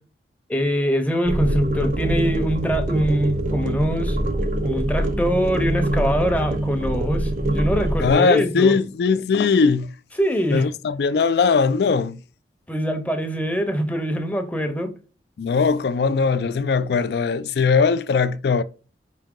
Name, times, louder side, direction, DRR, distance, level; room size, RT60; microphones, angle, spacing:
voice 1, 0.5-4.2 4.6-8.7 10.2-10.7 12.7-14.9, equal, 10° left, 0.6 m, -23 dB
sound 1, 1.2-8.1, right 1 dB, 45° right, 0.6 m, -24 dB
voice 2, 8.0-9.9 10.5-12.2 15.4-18.6, left 5 dB, 65° left, 0.3 m, -20 dB
4.8 x 2.7 x 3.6 m
head